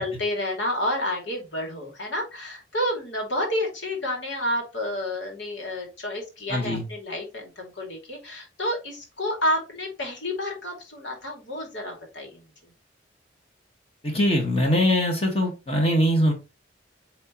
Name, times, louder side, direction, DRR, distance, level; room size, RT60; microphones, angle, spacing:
voice 1, 0.0-12.5, left 1 dB, 70° left, 1 dB, 2.6 m, -30 dB
voice 2, 6.5-6.8 14.0-16.3, left 1 dB, 30° left, 1 dB, 1.7 m, -22 dB
9.2 x 3.6 x 3.1 m, 0.28 s
head